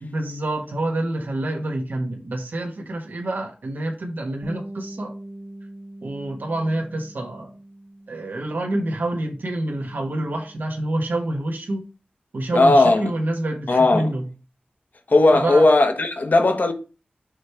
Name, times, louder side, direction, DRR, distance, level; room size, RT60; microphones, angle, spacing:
voice 1, 0.0-5.1 6.0-7.5 8.1-11.9 12.3-14.3 15.3-15.7, right 1 dB, 75° right, 1.4 m, -27 dB
Bass guitar, 4.4-10.7, right 1 dB, 20° right, 1.2 m, -42 dB
voice 2, 12.5-13.0 13.7-14.1 15.1-16.7, left 2 dB, 60° left, 1.2 m, -16 dB
6.4 x 3.3 x 5.6 m
cardioid pair, 50°, 3 cm